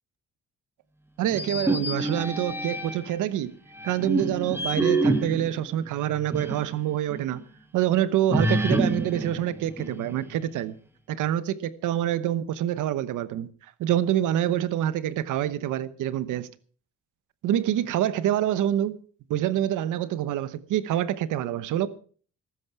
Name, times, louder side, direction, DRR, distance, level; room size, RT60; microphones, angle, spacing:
voice 1, 1.2-3.5 3.8-7.4 7.7-10.8 11.1-13.5 13.8-16.5 17.4-19.0 19.3-21.9, right 11 dB, 85° right, 1.0 m, -26 dB
sound 1, 1.3-3.2 3.7-6.7 7.1-7.2 8.3-10.4, right 2 dB, 10° right, 1.7 m, -27 dB
15.0 x 12.5 x 4.8 m
cardioid pair, 90°, 30 cm